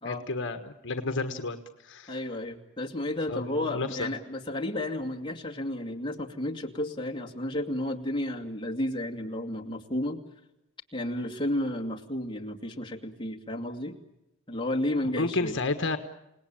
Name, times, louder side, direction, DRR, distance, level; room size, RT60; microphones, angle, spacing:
voice 1, 0.0-2.2 3.3-4.1 15.0-16.0, left 3 dB, 60° left, 7 dB, 1.5 m, -31 dB
voice 2, 2.1-10.2 10.9-13.9 14.5-15.6, left 1 dB, 20° left, 1 dB, 2.4 m, -32 dB
29.5 x 19.0 x 8.9 m, 0.92 s
head